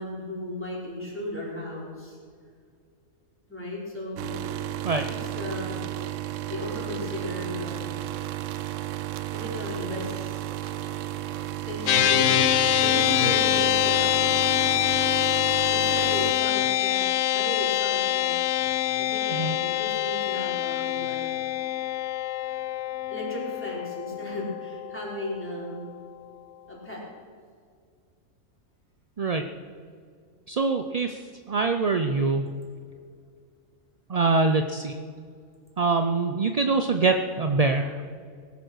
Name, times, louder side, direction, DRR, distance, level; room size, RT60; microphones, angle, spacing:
voice 1, 0.0-2.2 3.5-4.4 5.2-5.8 6.5-7.9 9.3-10.4 11.7-12.4 12.8-14.3 15.7-17.0 17.3-18.3 19.0-21.3 23.1-26.0 26.7-27.0, left 1 dB, 10° left, -5 dB, 4.6 m, -35 dB
sound 1, 4.2-16.3, right 13 dB, 75° right, 0.9 m, -33 dB
sound 2, 11.9-25.4, left 12 dB, 75° left, 1.0 m, -25 dB
voice 2, 30.5-31.2 31.5-32.5 34.1-34.9 35.8-37.9, right 3 dB, 45° right, 7 dB, 0.5 m, -24 dB
19.0 x 11.0 x 6.4 m, 2.2 s
omnidirectional pair, 1.4 m